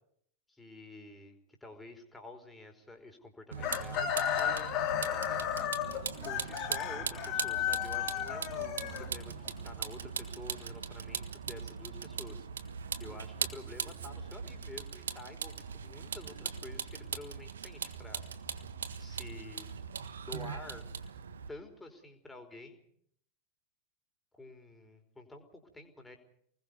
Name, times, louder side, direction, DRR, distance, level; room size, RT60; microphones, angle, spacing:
voice 1, 0.5-4.9 6.2-12.5 13.0-18.2 19.0-19.7 20.2-20.9 21.5-22.8 24.3-26.2, left 2 dB, 5° left, 3 dB, 4.8 m, -49 dB
Vehicle, 3.5-21.5, right 7 dB, 65° right, 1.5 m, -40 dB
Chicken rooster, 3.6-9.5, left 10 dB, 35° left, 2.9 m, -34 dB
29.0 x 20.5 x 5.4 m, 0.66 s
figure-of-eight pair, 90°, 0 cm